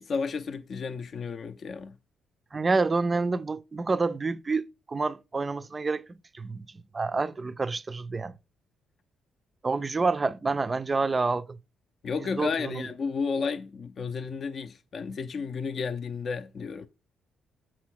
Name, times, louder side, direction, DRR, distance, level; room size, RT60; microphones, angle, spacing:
voice 1, 0.0-1.9 12.0-16.9, left 5 dB, 50° left, 0.5 m, -32 dB
voice 2, 2.5-6.7 6.9-8.3 9.6-11.6 12.2-12.9, right 3 dB, 30° right, 0.4 m, -28 dB
7.3 x 4.4 x 4.5 m
cardioid pair, 90°, 0 cm